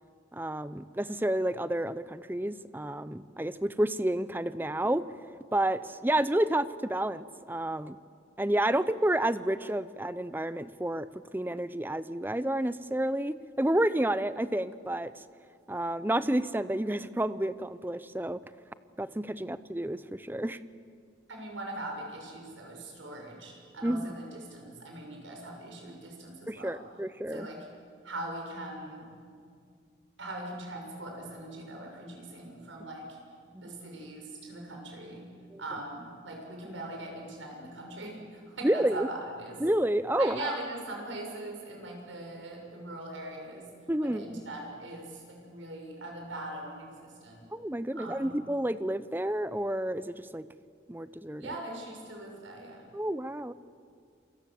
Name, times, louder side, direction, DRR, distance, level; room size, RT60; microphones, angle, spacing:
voice 1, 0.3-5.0 5.5-8.0 8.4-15.2 15.7-18.4 19.0-20.6 23.8-24.1 26.5-27.5 33.5-33.8 35.5-35.6 38.6-39.1 39.6-40.5 43.9-44.4 47.5-50.5 50.9-51.6 52.9-53.5, right 1 dB, 10° right, 14 dB, 0.6 m, -30 dB
voice 2, 21.3-26.8 27.3-27.7 28.0-29.1 30.2-33.2 33.6-35.3 35.6-39.6 40.2-43.7 44.0-47.4 47.9-48.5 51.4-52.9, right 2 dB, 80° right, 1 dB, 6.9 m, -41 dB
28.0 x 24.5 x 7.7 m, 2.3 s
head